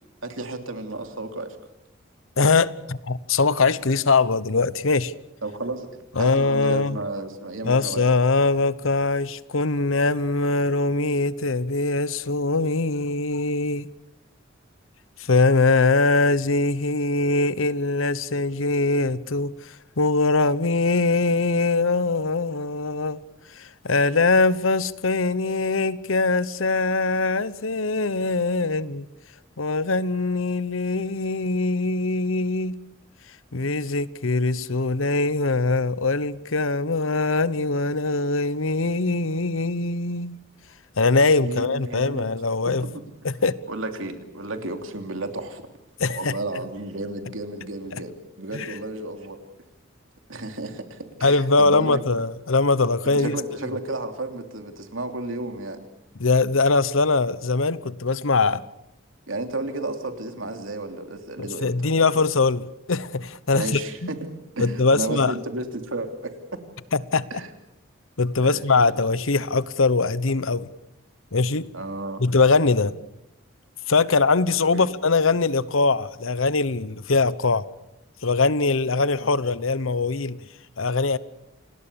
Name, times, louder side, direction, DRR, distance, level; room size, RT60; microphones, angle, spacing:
voice 1, 0.2-1.6 5.4-5.9 6.2-8.0 41.4-42.3 42.7-42.8 43.7-45.7 46.1-49.4 50.3-52.0 53.1-55.8 59.3-62.2 63.5-66.3 67.3-67.5 68.4-69.0 71.7-72.2 74.7-74.9, right 2 dB, 85° right, 3.0 m, -32 dB
voice 2, 2.4-5.1 6.2-7.0 7.6-13.9 15.2-19.5 20.0-23.2 23.6-29.1 29.6-32.8 33.5-40.4 41.0-42.9 43.2-43.6 46.0-46.3 47.9-48.0 48.5-48.7 51.2-53.4 56.2-58.6 61.4-63.8 64.6-65.3 66.9-67.2 68.2-70.7 71.3-71.7 72.2-72.9 73.9-77.6 78.2-80.4 80.8-81.2, left 3 dB, 85° left, 1.0 m, -22 dB
28.5 x 20.0 x 7.0 m
head